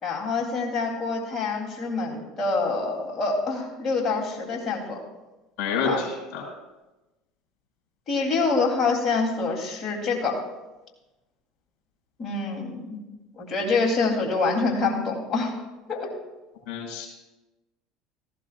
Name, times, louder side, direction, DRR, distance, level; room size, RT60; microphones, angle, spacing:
voice 1, 0.0-5.0 5.9-6.0 8.1-10.4 12.2-13.0 13.3-15.5 15.9-16.1, left 4 dB, 40° left, 0 dB, 3.6 m, -26 dB
voice 2, 5.6-6.1 6.3-6.4 16.7-17.1, left 5 dB, 60° left, -1 dB, 5.7 m, -27 dB
18.0 x 15.5 x 2.6 m, 1.1 s
hypercardioid pair, 75°, 0 cm